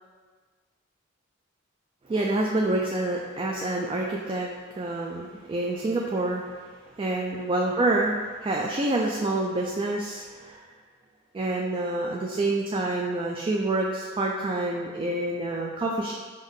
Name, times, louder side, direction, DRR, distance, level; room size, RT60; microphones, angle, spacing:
voice 1, 2.1-6.4 7.0-10.6 11.3-16.1, right 2 dB, 25° right, -1 dB, 0.3 m, -27 dB
5.4 x 2.6 x 3.6 m, 1.5 s
head